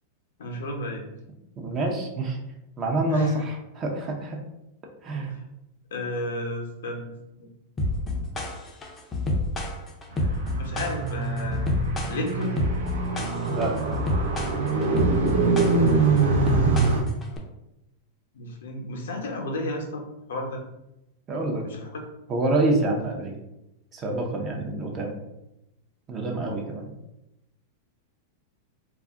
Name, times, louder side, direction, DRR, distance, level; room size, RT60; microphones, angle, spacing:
voice 1, 0.4-1.0 3.1-3.4 5.9-7.1 7.4-7.5 10.6-11.6 12.1-12.6 18.3-20.6 21.6-21.9, left 1 dB, 85° left, 2 dB, 0.7 m, -32 dB
voice 2, 1.6-2.4 2.8-4.4 5.0-5.4 13.5-13.7 21.3-21.6 22.3-23.3 23.9-25.2 26.1-26.9, right 2 dB, 30° right, 1 dB, 0.6 m, -27 dB
sound 1, 7.8-17.4, left 2 dB, 20° left, 0.5 m, -28 dB
Car, 10.1-17.0, right 4 dB, 90° right, 0.6 m, -24 dB
2.3 x 2.1 x 3.5 m, 0.89 s
hypercardioid pair, 130°, 0 cm